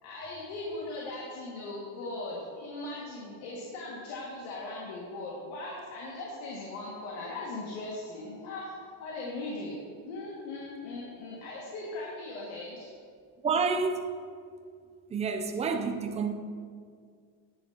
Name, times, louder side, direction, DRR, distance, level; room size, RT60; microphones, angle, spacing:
voice 1, 0.0-8.7 9.0-12.9, left 2 dB, 85° left, 2.0 m, -39 dB
voice 2, 13.4-14.0 15.1-16.3, right 5 dB, 15° right, 0.4 m, -28 dB
10.5 x 10.0 x 2.8 m
cardioid pair, 160°, 46 cm